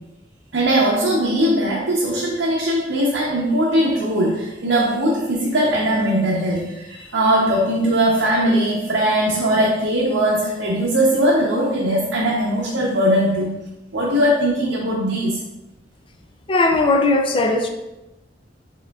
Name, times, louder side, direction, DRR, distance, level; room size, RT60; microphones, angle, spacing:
voice 1, 0.5-13.6 13.9-15.4, right 1 dB, 80° right, -5 dB, 0.7 m, -20 dB
voice 2, 16.5-17.7, left 2 dB, 30° left, 4 dB, 0.3 m, -18 dB
4.8 x 3.6 x 2.3 m, 0.98 s
head